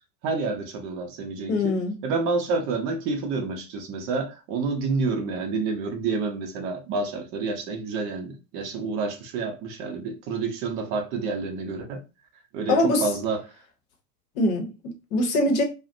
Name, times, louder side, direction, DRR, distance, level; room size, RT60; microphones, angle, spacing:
voice 1, 0.2-1.8 2.0-12.0 12.5-13.4, right 4 dB, 30° right, 0.5 m, -29 dB
voice 2, 1.5-1.9 12.7-13.1 14.4-15.6, left 1 dB, 60° left, 0.8 m, -23 dB
2.4 x 2.1 x 2.5 m
figure-of-eight pair, 85°, 48 cm